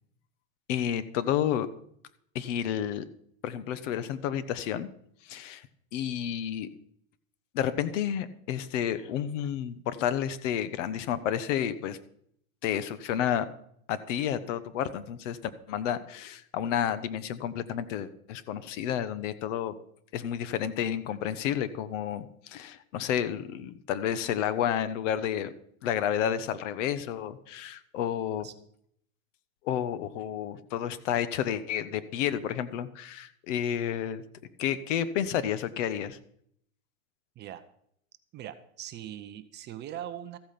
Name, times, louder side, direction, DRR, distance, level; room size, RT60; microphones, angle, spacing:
voice 1, 0.7-1.7 2.3-3.0 3.4-4.9 5.2-5.6 5.9-6.7 7.5-12.0 12.6-13.5 13.9-19.7 20.1-25.5 25.8-28.5 29.6-34.2 34.6-36.2, left 10 dB, 60° left, 14 dB, 1.2 m, -30 dB
voice 2, 38.3-40.4, right 11 dB, 25° right, 11 dB, 0.7 m, -41 dB
14.5 x 8.7 x 5.8 m, 0.68 s
supercardioid pair, 140°, 42 cm